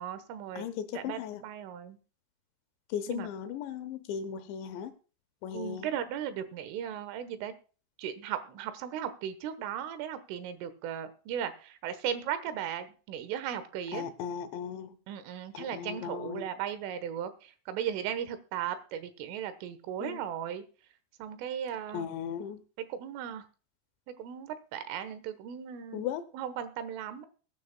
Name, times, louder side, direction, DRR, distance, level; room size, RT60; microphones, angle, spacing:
voice 1, 0.0-0.7 1.0-2.0 3.1-3.3 5.5-7.5 8.0-14.1 15.1-20.6 21.2-22.1 22.9-23.4 24.2-26.1 26.3-27.3, right 9 dB, 85° right, 11 dB, 3.7 m, -37 dB
voice 2, 0.6-1.4 2.9-4.9 5.4-5.9 13.9-15.0 15.5-16.5 20.0-20.2 21.9-22.6 25.9-26.2, left 8 dB, 80° left, 10 dB, 2.9 m, -37 dB
22.0 x 9.4 x 2.2 m, 0.37 s
omnidirectional pair, 5.6 m